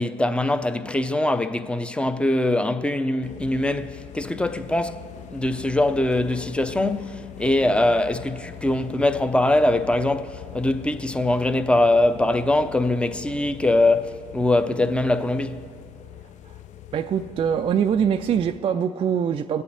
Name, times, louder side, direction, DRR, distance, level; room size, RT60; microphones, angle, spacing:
voice 1, 0.0-15.6, left 2 dB, 5° left, 0.6 m, -22 dB
sound 1, 3.2-18.6, left 11 dB, 50° left, 0.6 m, -42 dB
voice 2, 16.9-19.6, right 8 dB, 35° right, 0.4 m, -23 dB
22.5 x 8.3 x 3.4 m
hypercardioid pair, 70°, 16 cm